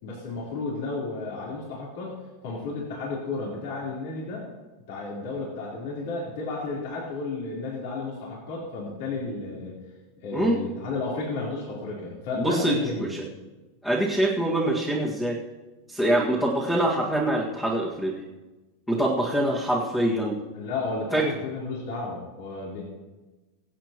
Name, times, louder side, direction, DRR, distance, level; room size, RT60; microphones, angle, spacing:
voice 1, 0.0-4.4 4.9-9.8 10.2-13.1 20.5-22.8, left 3 dB, 65° left, -5 dB, 3.7 m, -32 dB
voice 2, 12.4-13.2 13.8-15.4 15.9-18.1 18.9-20.4 21.1-21.3, right 1 dB, 10° left, -5 dB, 1.8 m, -24 dB
23.5 x 8.3 x 3.0 m, 1.2 s
supercardioid pair, 150°, 0 cm